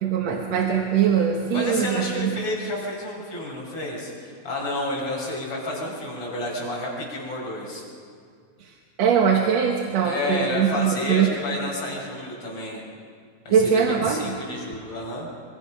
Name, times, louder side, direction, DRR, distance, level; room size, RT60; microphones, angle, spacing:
voice 1, 0.0-2.3 8.6-8.7 9.0-11.3 13.5-14.4, right 7 dB, 60° right, 1 dB, 2.4 m, -22 dB
voice 2, 1.5-7.8 10.0-12.8 13.5-15.3, left 1 dB, 45° left, -3 dB, 6.8 m, -30 dB
24.5 x 24.0 x 5.9 m, 2.2 s
omnidirectional pair, 3.6 m